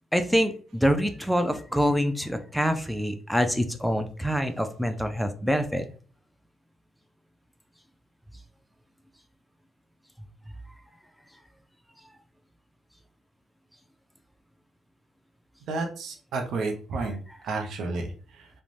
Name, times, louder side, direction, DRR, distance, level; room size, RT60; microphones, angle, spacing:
voice 1, 0.1-5.8, equal, ahead, 8 dB, 0.3 m, -25 dB
voice 2, 15.7-17.2 17.4-18.5, right 3 dB, 70° right, 3 dB, 0.5 m, -31 dB
2.5 x 2.1 x 3.1 m, 0.41 s
cardioid pair, 90°, 0 cm